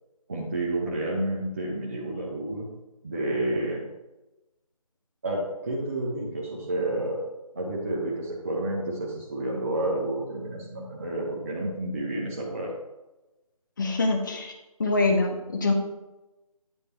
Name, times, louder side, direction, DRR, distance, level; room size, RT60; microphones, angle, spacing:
voice 1, 0.3-2.7 3.0-3.8 5.2-7.2 7.5-12.7, right 1 dB, 25° right, -4 dB, 0.7 m, -30 dB
voice 2, 13.8-14.5 14.8-15.7, left 3 dB, 35° left, 2 dB, 1.0 m, -24 dB
8.8 x 3.3 x 4.4 m, 1.0 s
figure-of-eight pair, 160°, 19 cm